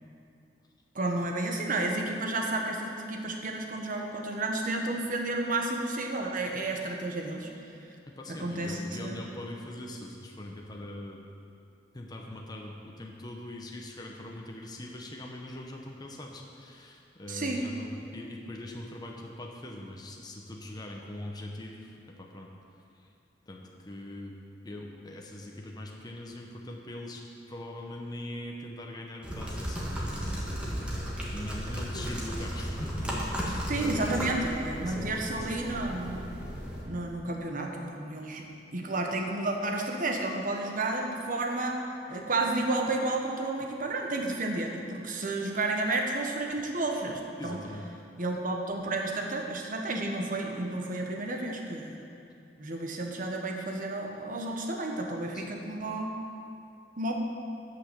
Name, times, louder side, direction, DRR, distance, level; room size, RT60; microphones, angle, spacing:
voice 1, 0.9-7.5 8.3-9.1 17.3-17.7 33.7-36.2 36.9-38.4 38.7-41.8 42.1-47.6 48.2-52.0 52.6-56.1 57.0-57.2, right 2 dB, 50° right, 2 dB, 1.1 m, -31 dB
voice 2, 8.1-11.2 11.9-22.5 23.5-24.4 24.6-27.2 27.5-30.5 31.3-34.4 34.8-35.8 47.4-47.9 55.3-55.6, left 1 dB, 25° left, -1 dB, 0.8 m, -42 dB
sound 1, 29.2-36.8, equal, 5° right, 1.6 m, -35 dB
9.4 x 5.8 x 6.9 m, 2.7 s
head